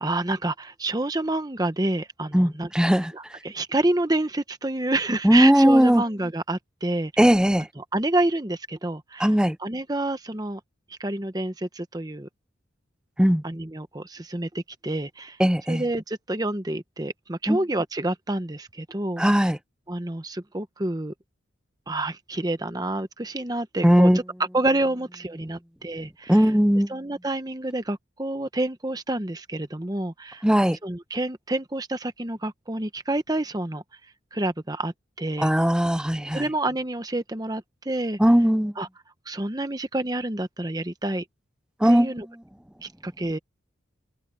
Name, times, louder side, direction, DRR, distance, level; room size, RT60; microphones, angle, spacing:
voice 1, 0.0-2.7 3.1-7.1 7.8-9.3 9.6-10.6 10.9-12.3 13.4-15.4 15.7-19.2 19.9-21.1 21.9-24.1 24.5-26.4 26.9-30.4 30.8-33.8 34.3-35.5 36.3-38.2 38.8-38.9 39.3-41.2 41.9-42.2 42.8-43.4, right 2 dB, 20° right, 1.0 m, -28 dB
voice 2, 2.3-3.1 5.2-6.0 7.2-7.7 9.2-9.6 13.2-13.4 15.4-15.8 17.5-17.6 19.2-19.6 23.8-24.2 26.3-26.9 30.4-30.8 35.4-36.4 38.2-38.7 41.8-42.1, equal, 5° right, 0.6 m, -18 dB
head